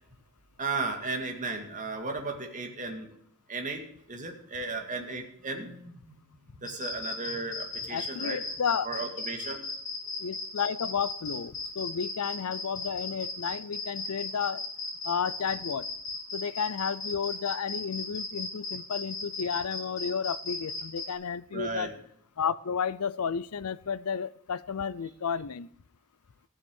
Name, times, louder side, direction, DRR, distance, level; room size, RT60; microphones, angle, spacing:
voice 1, 0.6-3.1 3.5-3.8 4.1-5.9 6.6-8.4 8.8-9.6 21.5-21.9, right 3 dB, 35° right, 2.1 m, -35 dB
sound 1, 6.6-21.1, left 3 dB, 35° left, 3.8 m, -36 dB
voice 2, 7.9-9.0 10.2-14.6 15.0-15.9 16.3-21.9 22.4-25.7, left 6 dB, 80° left, 0.5 m, -32 dB
16.0 x 7.2 x 6.4 m
head